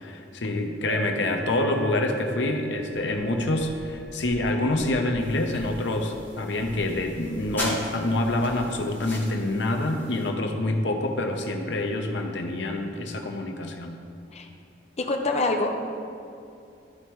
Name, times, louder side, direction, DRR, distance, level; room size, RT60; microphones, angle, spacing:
voice 1, 0.0-14.0, left 2 dB, 85° left, 3 dB, 0.8 m, -27 dB
sound 1, 0.9-8.4, right 4 dB, 90° right, 0.5 m, -43 dB
sound 2, 3.1-3.9 4.2-4.3 4.7-5.1 5.5-5.6 6.0-6.2 6.5-7.7 8.1-9.7 10.0-10.1, equal, 40° right, 1.8 m, -46 dB
sound 3, 5.2-10.3, left 1 dB, 10° left, 1.6 m, -39 dB
voice 2, 15.0-15.7, left 2 dB, 40° left, 3 dB, 0.7 m, -25 dB
13.0 x 4.5 x 3.1 m, 2.6 s
head